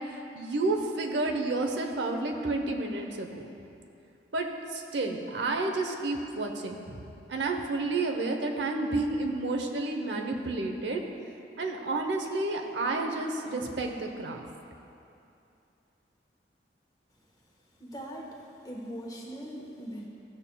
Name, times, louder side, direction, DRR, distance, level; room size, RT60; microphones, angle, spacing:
voice 1, 0.0-3.5 4.3-11.0 11.6-14.4, right 2 dB, 90° right, 3 dB, 0.8 m, -31 dB
voice 2, 17.8-18.4 18.6-20.1, equal, 20° left, -2 dB, 1.1 m, -40 dB
14.0 x 7.0 x 2.3 m, 2.7 s
head